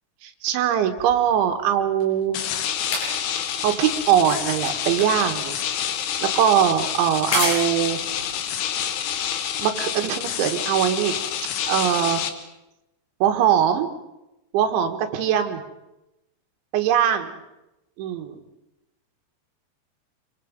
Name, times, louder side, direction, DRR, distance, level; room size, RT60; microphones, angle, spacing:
voice 1, 0.2-2.4 3.6-5.6 6.2-8.0 9.6-11.1 11.7-12.2 13.2-13.9 14.5-15.6 16.7-17.4 18.0-18.4, right 9 dB, 80° right, 6 dB, 3.9 m, -21 dB
sound 1, 1.0-9.6 10.4-10.5, left 2 dB, 90° left, 8.6 m, -33 dB
sound 2, 2.3-12.3, left 9 dB, 70° left, 3.3 m, -28 dB
27.5 x 24.0 x 5.3 m, 0.94 s
omnidirectional pair, 5.3 m